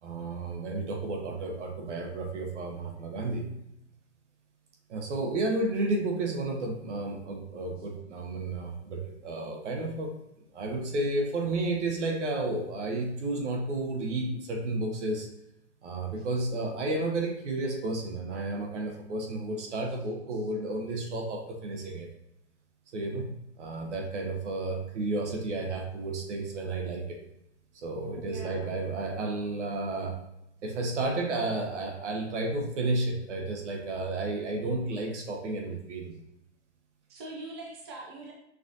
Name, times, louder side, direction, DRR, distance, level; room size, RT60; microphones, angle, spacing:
voice 1, 0.0-3.5 4.9-10.1 10.5-15.3 15.8-22.1 22.9-27.2 27.7-30.2 30.6-36.1, right 2 dB, 80° right, 2 dB, 1.1 m, -32 dB
voice 2, 28.1-28.8 37.1-38.3, right 2 dB, 25° right, -2 dB, 0.4 m, -42 dB
5.9 x 2.8 x 2.5 m, 0.81 s
hypercardioid pair, 170°, 35 cm